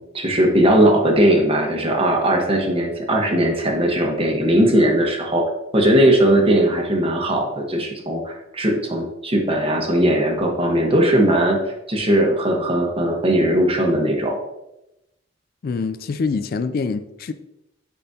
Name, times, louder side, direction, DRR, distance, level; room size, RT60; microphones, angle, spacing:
voice 1, 0.1-5.4 5.7-11.6 11.9-14.3, right 1 dB, 30° right, 1 dB, 1.1 m, -18 dB
voice 2, 15.6-17.3, left 4 dB, 50° left, 11 dB, 0.3 m, -25 dB
9.8 x 4.2 x 2.7 m, 0.89 s
head